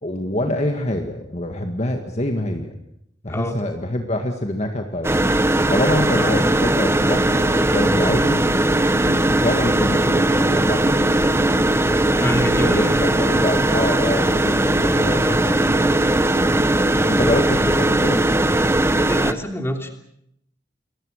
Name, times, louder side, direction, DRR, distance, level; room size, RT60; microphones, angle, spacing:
voice 1, 0.0-2.7 3.2-5.3 5.7-8.4 9.0-11.0 12.5-16.0 17.0-18.2, left 1 dB, 35° left, 4 dB, 1.9 m, -25 dB
sound 1, 5.0-19.3, right 1 dB, 15° right, 0.9 m, -19 dB
voice 2, 12.2-13.0 19.0-19.9, equal, 15° left, 4 dB, 3.0 m, -26 dB
28.0 x 22.0 x 6.6 m, 0.74 s
head